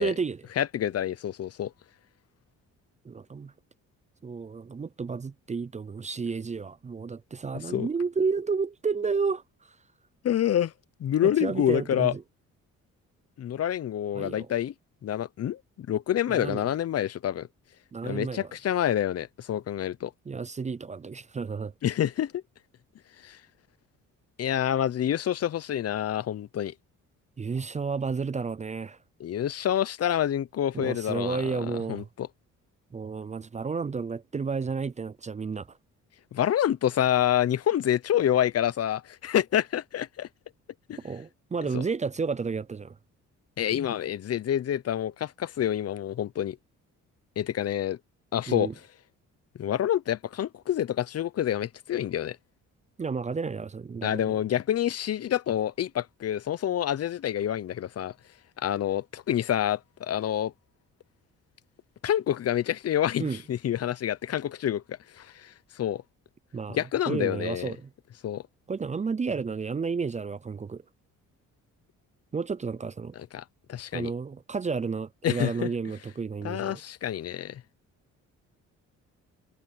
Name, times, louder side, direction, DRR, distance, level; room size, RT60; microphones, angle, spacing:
voice 1, 0.0-0.4 3.0-3.5 4.2-9.4 11.2-12.2 14.1-14.5 16.3-16.6 17.9-18.5 20.3-21.7 27.4-29.0 30.7-32.1 32.9-35.8 41.0-43.0 48.5-48.7 53.0-54.3 63.2-63.4 66.5-67.9 68.7-70.8 72.3-73.1 73.9-76.8, right 5 dB, 25° right, 0.5 m, -31 dB
voice 2, 0.6-1.7 7.7-7.9 10.2-10.7 11.0-12.1 13.4-14.7 15.0-17.5 18.0-20.1 21.8-22.4 23.2-23.4 24.4-26.7 29.2-31.6 31.9-32.3 36.3-40.3 40.9-41.0 41.7-41.8 43.6-46.6 47.4-48.0 48.3-48.7 49.6-52.4 54.0-58.1 58.6-60.5 62.0-66.0 66.7-67.7 68.2-68.4 73.2-74.1 75.2-75.7 76.4-77.6, left 10 dB, 55° left, 0.8 m, -27 dB
cardioid pair, 90°, 30 cm